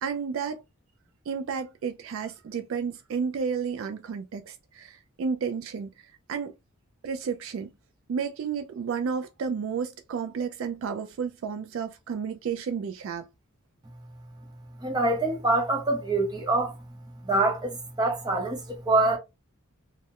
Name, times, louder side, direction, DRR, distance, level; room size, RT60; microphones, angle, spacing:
voice 1, 0.0-0.6 1.3-5.9 6.3-6.5 7.0-7.7 8.1-13.2, right 6 dB, 65° right, 0.3 m, -31 dB
voice 2, 14.8-16.8 17.2-19.2, right 2 dB, 20° right, 0.7 m, -25 dB
2.3 x 2.0 x 2.8 m
head